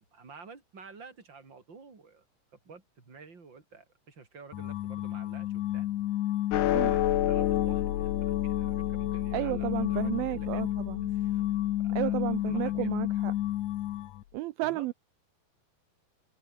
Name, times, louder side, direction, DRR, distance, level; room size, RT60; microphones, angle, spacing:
voice 1, 0.0-2.2 2.5-5.9 6.7-10.8 11.1-11.4 11.8-12.2 12.5-12.9 14.6-14.9, right 4 dB, 25° right, 4.3 m, -50 dB
sound 1, 4.5-14.2, left 13 dB, 90° left, 1.6 m, -32 dB
sound 2, 6.5-13.0, left 13 dB, 70° left, 3.5 m, -31 dB
voice 2, 9.3-11.1 12.0-13.3 14.3-14.9, right 18 dB, 80° right, 2.2 m, -32 dB
omnidirectional pair, 5.0 m